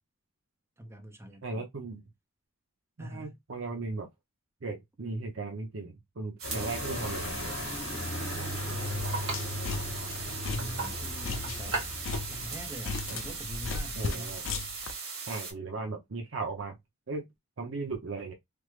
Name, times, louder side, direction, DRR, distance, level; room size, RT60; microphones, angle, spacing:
voice 1, 0.8-1.6 3.0-3.4 8.6-9.1 10.5-11.9 12.3-14.4, equal, 15° right, 0.6 m, -44 dB
voice 2, 1.4-2.0 3.0-4.1 4.6-7.6 13.1-13.2 14.0-14.4 15.3-16.8 17.1-17.3 17.6-18.3, right 3 dB, 65° right, 0.7 m, -37 dB
sound 1, 6.4-13.4, left 1 dB, 90° left, 0.9 m, -38 dB
sound 2, 6.4-15.5, right 4 dB, 85° right, 1.6 m, -38 dB
sound 3, 9.0-14.9, left 4 dB, 70° left, 0.5 m, -37 dB
3.4 x 2.0 x 3.1 m
head